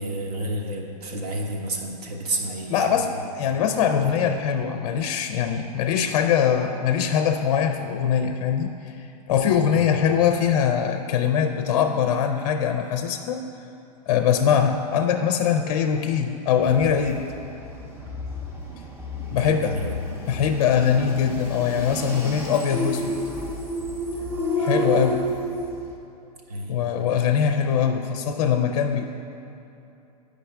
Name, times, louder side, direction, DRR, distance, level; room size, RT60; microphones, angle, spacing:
voice 1, 0.0-3.1 3.8-4.1 9.7-9.9 19.3-20.3 26.5-26.8, right 1 dB, 70° right, 1 dB, 1.2 m, -31 dB
voice 2, 2.7-13.4 14.1-17.3 19.3-19.8 20.3-23.2 24.6-25.2 26.7-29.0, left 8 dB, 55° left, 6 dB, 0.4 m, -22 dB
sound 1, 16.6-26.0, equal, 10° right, 0.6 m, -30 dB
9.0 x 5.0 x 3.3 m, 2.8 s
hypercardioid pair, 140°, 20 cm